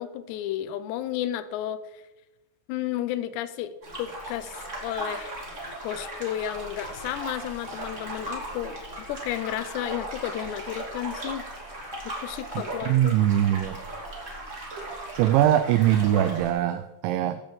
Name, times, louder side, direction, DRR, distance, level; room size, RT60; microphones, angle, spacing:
voice 1, 0.0-1.8 2.7-3.7 4.0-5.4 5.8-11.5 12.1-13.2, left 12 dB, 80° left, 12 dB, 2.6 m, -32 dB
sound 1, 3.8-16.5, right 1 dB, 25° right, 1.6 m, -37 dB
voice 2, 12.9-13.8 15.1-17.4, right 11 dB, 80° right, 9 dB, 2.8 m, -22 dB
15.5 x 5.3 x 7.7 m, 1.0 s
omnidirectional pair, 5.6 m